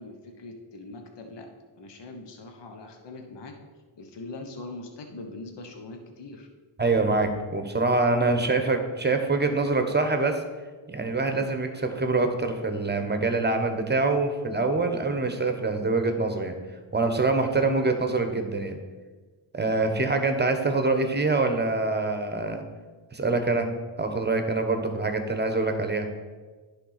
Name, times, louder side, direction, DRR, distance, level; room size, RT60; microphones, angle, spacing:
voice 1, 0.0-1.5 1.8-3.6 4.0-6.5, left 2 dB, 60° left, 4 dB, 1.1 m, -42 dB
voice 2, 6.8-10.4 10.9-16.5 16.9-18.8 19.5-22.6 23.1-23.7 24.0-26.1, right 3 dB, 20° right, 6 dB, 1.0 m, -25 dB
10.0 x 3.5 x 5.7 m, 1.4 s
cardioid pair, 60°, 48 cm